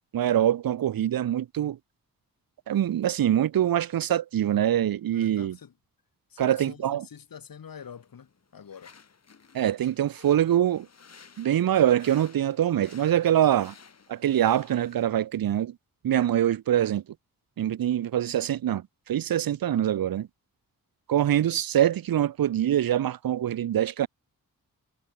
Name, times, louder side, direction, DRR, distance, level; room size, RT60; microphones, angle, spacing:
voice 1, 0.1-1.8 2.7-5.6 6.4-7.0 9.5-10.9 11.4-13.7 14.1-15.7 16.0-17.0 17.6-18.8 19.1-20.3 21.1-24.1, right 11 dB, 75° right, 0.7 m, -24 dB
voice 2, 5.1-5.7 6.3-8.9, left 7 dB, 75° left, 4.9 m, -46 dB
sound 1, 7.8-15.1, left 5 dB, 45° left, 5.9 m, -55 dB
wide cardioid pair, 180°, 35 cm